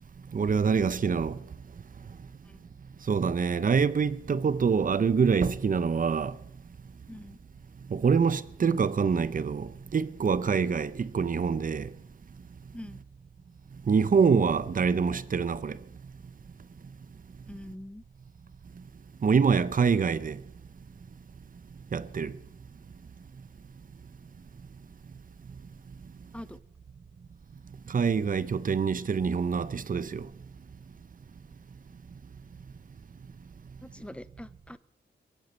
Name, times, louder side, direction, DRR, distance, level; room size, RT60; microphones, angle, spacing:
voice 1, 0.3-1.4 3.1-6.3 7.9-11.9 13.9-15.8 19.2-20.4 21.9-22.3 27.9-30.3, right 5 dB, 45° right, 0.9 m, -25 dB
voice 2, 17.5-18.0 26.3-26.5 34.0-34.8, left 1 dB, 5° left, 0.9 m, -43 dB
22.0 x 7.6 x 8.1 m
cardioid pair, 65°, 19 cm